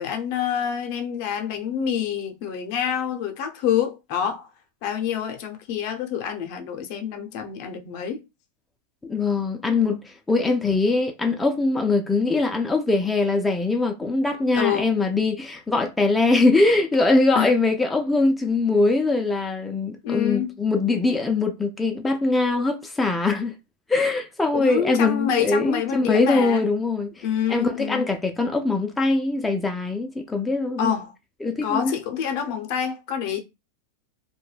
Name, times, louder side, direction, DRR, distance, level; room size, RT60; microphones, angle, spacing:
voice 1, 0.0-4.5 4.8-8.2 14.5-14.9 17.3-17.5 20.0-20.5 24.5-26.7 27.2-28.1 30.8-31.1 31.6-33.4, left 8 dB, 55° left, 0.6 m, -27 dB
voice 2, 9.0-23.5 23.9-27.2 27.5-30.9 31.4-31.9, left 3 dB, 10° left, 0.4 m, -22 dB
2.2 x 2.1 x 3.1 m
hypercardioid pair, 125°, 0 cm